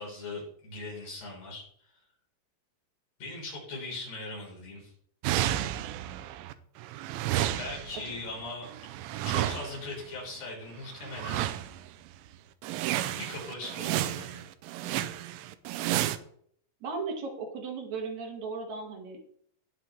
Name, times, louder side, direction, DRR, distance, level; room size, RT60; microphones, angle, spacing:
voice 1, 0.0-1.9 3.2-4.9 7.5-8.7 9.2-11.5 13.1-14.4, left 2 dB, 50° left, -3 dB, 5.2 m, -40 dB
sound 1, 5.2-6.5 6.8-10.0 11.0-11.9 12.3-12.4 12.6-16.2, right 13 dB, 85° right, 3.0 m, -32 dB
voice 2, 16.8-19.2, right 4 dB, 60° right, 2 dB, 1.9 m, -36 dB
19.0 x 6.6 x 3.1 m, 0.63 s
omnidirectional pair, 5.7 m